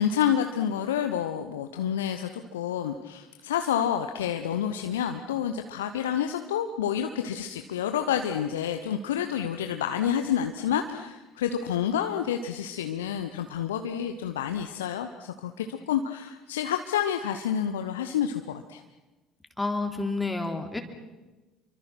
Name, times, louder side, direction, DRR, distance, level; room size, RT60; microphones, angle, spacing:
voice 1, 0.0-18.8, left 9 dB, 75° left, 7 dB, 1.0 m, -29 dB
voice 2, 19.6-20.8, left 3 dB, 10° left, 4 dB, 3.6 m, -29 dB
29.0 x 24.0 x 6.0 m, 1.1 s
figure-of-eight pair, 55°, 0 cm